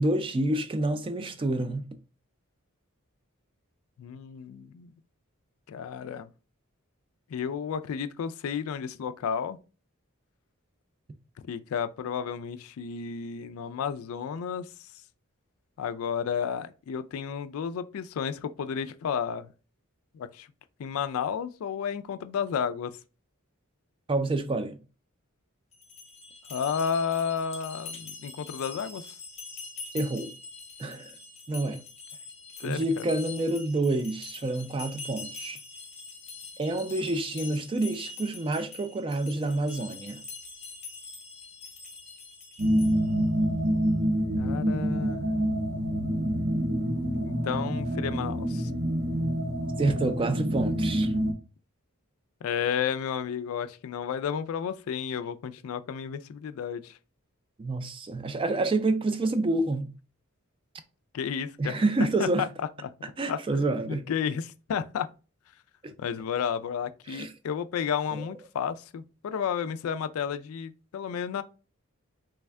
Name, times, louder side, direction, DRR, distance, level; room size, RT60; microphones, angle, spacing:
voice 1, 0.0-1.9 24.1-24.8 29.9-30.3 30.8-31.2 31.5-31.8 32.6-35.6 36.6-40.2 49.8-51.1 57.6-59.9 61.6-62.5 63.2-64.1 65.8-65.9 67.1-67.3 68.1-68.3, right 2 dB, 25° right, 0.3 m, -28 dB
voice 2, 4.0-4.9 5.7-6.3 7.3-9.6 11.5-14.7 15.8-19.5 20.1-20.5 20.8-22.9 26.5-29.1 32.6-33.0 44.4-45.3 47.1-48.7 52.4-57.0 61.1-62.3 63.3-63.4 63.9-65.1 66.0-71.4, left 7 dB, 75° left, 0.3 m, -32 dB
sound 1, 25.7-43.2, left 4 dB, 30° left, 0.6 m, -44 dB
sound 2, 42.6-51.3, equal, 50° right, 0.7 m, -27 dB
3.4 x 2.2 x 3.4 m
head